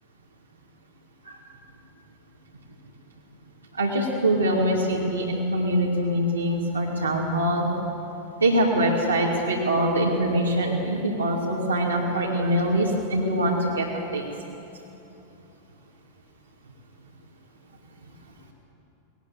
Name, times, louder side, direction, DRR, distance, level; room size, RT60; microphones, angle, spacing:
voice 1, 3.8-7.7 8.4-14.2, right 1 dB, 80° right, -5 dB, 2.6 m, -23 dB
20.0 x 18.5 x 7.5 m, 2.9 s
figure-of-eight pair, 90°, 0 cm